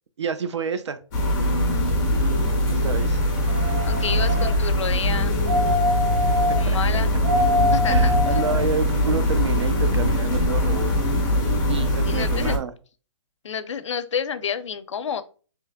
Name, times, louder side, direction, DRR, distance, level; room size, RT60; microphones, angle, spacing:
voice 1, 0.2-1.0 1.8-1.9 2.7-3.2 6.2-6.3 6.7-6.8 7.9-12.7, right 6 dB, 65° right, 0.6 m, -29 dB
sound 1, 1.1-12.6, left 1 dB, 10° left, 0.5 m, -22 dB
sound 2, 3.5-4.5 5.5-6.6 7.2-8.5 9.1-9.2, left 1 dB, 40° right, 1.1 m, -24 dB
voice 2, 3.8-5.4 6.6-7.1 7.7-8.7 11.6-11.7 12.0-12.6 13.4-15.2, left 7 dB, 70° left, 0.5 m, -30 dB
3.2 x 2.9 x 3.5 m
hypercardioid pair, 175°, 16 cm